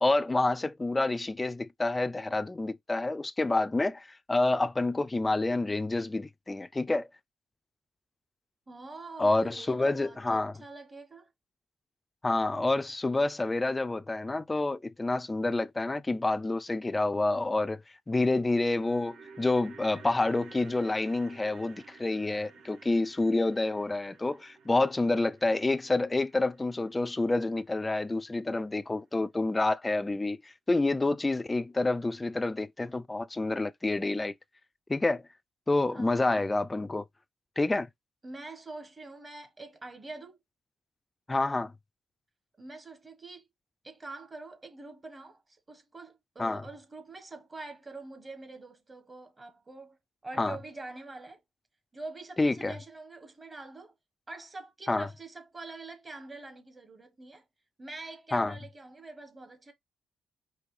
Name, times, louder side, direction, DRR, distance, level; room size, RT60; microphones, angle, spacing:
voice 1, 0.0-7.1 9.2-10.5 12.2-17.8 18.1-34.3 34.9-35.2 35.7-37.0 37.6-37.9 41.3-41.7 46.4-46.6 50.4-50.6 52.4-52.7 54.9-55.1 58.3-58.5, left 2 dB, 20° left, 0.4 m, -28 dB
voice 2, 8.7-11.3 35.9-36.4 38.2-40.4 42.6-43.5 43.8-50.0 50.2-51.4 51.9-53.9 54.3-57.4 57.8-59.7, right 3 dB, 25° right, 1.2 m, -45 dB
sound 1, 18.4-28.6 28.9-29.0, right 5 dB, 75° right, 1.5 m, -54 dB
5.1 x 2.8 x 3.2 m
cardioid pair, 90°, 0 cm